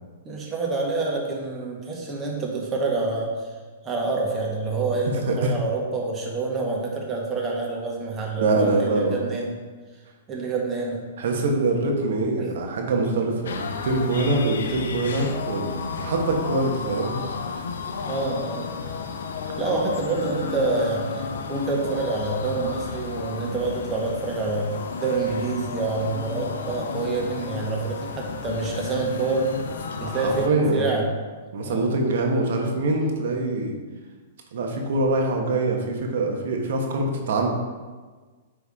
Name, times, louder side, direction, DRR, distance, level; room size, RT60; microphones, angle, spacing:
voice 1, 0.2-3.5 3.8-9.6 10.3-11.0 12.4-12.5 18.1-18.6 19.6-29.5 30.0-31.1 31.6-31.9, right 3 dB, 20° right, -2 dB, 1.5 m, -27 dB
voice 2, 8.4-9.2 11.2-17.2 30.0-31.0 31.5-33.8 34.5-37.5, right 2 dB, 70° right, 1 dB, 1.3 m, -24 dB
sound 1, 13.5-30.5, left 5 dB, 75° left, 0.6 m, -32 dB
9.8 x 3.5 x 3.6 m, 1.4 s
hypercardioid pair, 130°, 0 cm